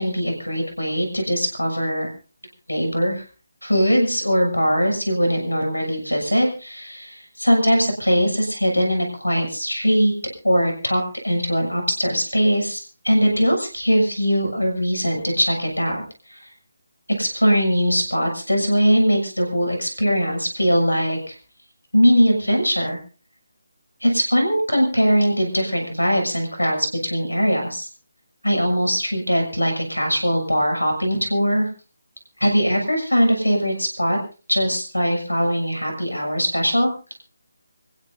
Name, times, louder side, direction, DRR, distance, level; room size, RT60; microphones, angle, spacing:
voice 1, 0.0-2.1 2.7-3.3 3.6-10.1 10.4-16.0 16.3-16.5 17.2-21.3 21.9-23.0 24.0-27.9 28.4-31.7 32.4-34.2 34.5-36.9, equal, 90° left, 2 dB, 7.2 m, -21 dB
27.5 x 15.5 x 2.7 m, 0.36 s
figure-of-eight pair, 150°, 0 cm